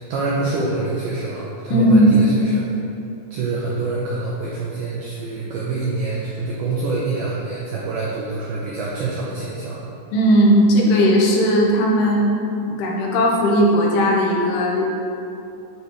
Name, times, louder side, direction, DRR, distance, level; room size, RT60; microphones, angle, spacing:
voice 1, 0.1-2.7 3.3-9.9, right 3 dB, 85° right, -5 dB, 1.8 m, -25 dB
voice 2, 1.7-2.1 10.1-12.3 12.7-14.8, equal, 80° left, -2 dB, 2.8 m, -16 dB
9.3 x 5.2 x 3.1 m, 2.7 s
omnidirectional pair, 4.6 m